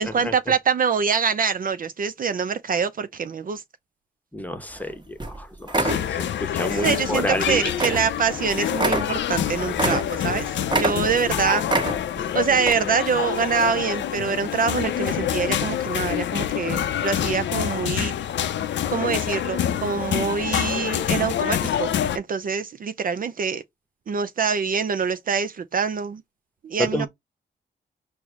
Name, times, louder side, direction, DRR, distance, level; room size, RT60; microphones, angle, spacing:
voice 1, 0.0-3.6 6.7-11.6 12.3-18.1 18.9-23.6 24.1-26.2 26.6-27.1, right 6 dB, 50° right, 0.5 m, -25 dB
voice 2, 4.3-7.6 11.4-11.6 26.8-27.1, left 1 dB, 10° left, 0.9 m, -29 dB
sound 1, 4.8-4.9 5.2-5.4 5.7-6.1 6.8-7.0 7.3-7.4 7.8-8.1 8.3-8.4 8.7-10.4 10.7-11.3 11.7-12.2 12.6-12.7, right 2 dB, 25° right, 1.2 m, -25 dB
sound 2, 5.8-22.2, left 10 dB, 80° left, 0.5 m, -26 dB
4.6 x 2.0 x 3.5 m
cardioid pair, 60°, 19 cm